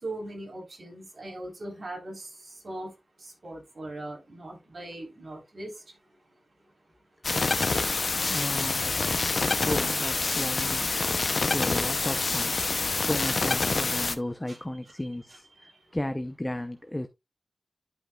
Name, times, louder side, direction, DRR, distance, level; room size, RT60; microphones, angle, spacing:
voice 1, 0.0-2.9 3.2-5.7 11.5-11.6 14.5-14.6 15.3-15.4, right 1 dB, 55° right, 3.8 m, -40 dB
sound 1, 7.2-14.2, left 3 dB, 55° left, 0.7 m, -27 dB
voice 2, 8.3-11.0 11.4-17.1, left 1 dB, 15° left, 0.7 m, -34 dB
11.5 x 5.4 x 2.4 m
wide cardioid pair, 65°, 0 cm